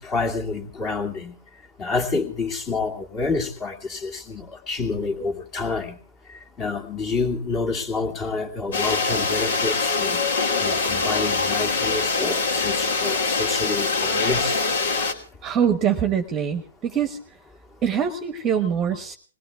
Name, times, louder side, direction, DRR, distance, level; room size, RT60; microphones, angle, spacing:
voice 1, 0.0-1.4 1.8-6.0 6.6-10.2 10.6-14.6, left 3 dB, 25° left, 5 dB, 2.5 m, -28 dB
sound 1, 8.7-15.1, left 4 dB, 60° left, 2.8 m, -23 dB
voice 2, 15.4-17.2 17.8-19.2, right 8 dB, 20° right, 9 dB, 1.2 m, -23 dB
21.0 x 18.5 x 3.5 m, 0.38 s
figure-of-eight pair, 125°, 0 cm